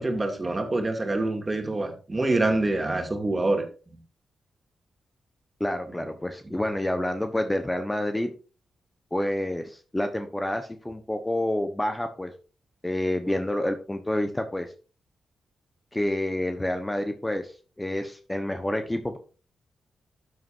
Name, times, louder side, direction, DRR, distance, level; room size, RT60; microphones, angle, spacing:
voice 1, 0.0-3.7, right 2 dB, 30° right, 4 dB, 2.6 m, -26 dB
voice 2, 5.6-8.3 9.1-12.3 12.8-14.7 15.9-17.5 17.8-19.2, left 1 dB, 15° left, 7 dB, 1.2 m, -28 dB
12.5 x 8.2 x 2.7 m, 0.36 s
supercardioid pair, 45°, 0 cm